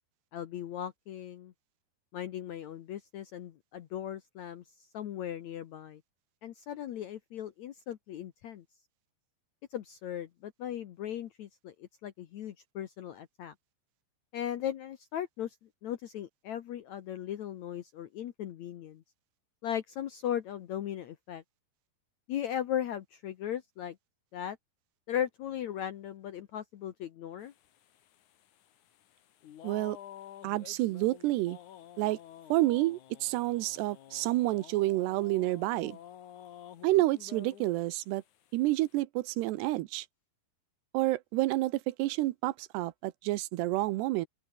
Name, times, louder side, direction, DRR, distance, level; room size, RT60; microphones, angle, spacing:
voice 1, 0.3-1.5 2.1-6.0 6.4-8.6 9.7-13.5 14.3-15.6 15.8-19.0 19.6-21.4 22.3-24.0 24.3-24.6 25.1-27.5, left 10 dB, 90° left, 1.5 m, -37 dB
sound 1, 27.4-37.9 38.3-39.0, left 11 dB, 60° left, 2.3 m, -51 dB
voice 2, 29.6-30.0 30.4-31.6 32.0-32.2 32.5-36.0 36.8-38.2 38.5-40.1 40.9-44.3, right 18 dB, 80° right, 2.9 m, -29 dB
open air
omnidirectional pair, 5.0 m